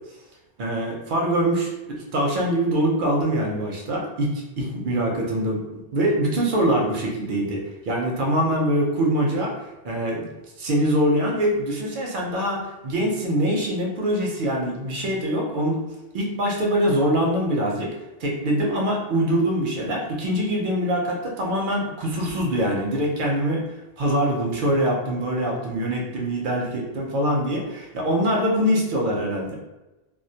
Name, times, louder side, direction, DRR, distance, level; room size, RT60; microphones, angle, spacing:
voice 1, 0.6-4.3 4.6-9.5 9.8-10.3 10.6-15.8 16.1-17.9 18.2-23.6 24.0-29.6, right 1 dB, 60° right, -1 dB, 0.6 m, -23 dB
2.2 x 2.1 x 2.6 m, 1.0 s
omnidirectional pair, 1.1 m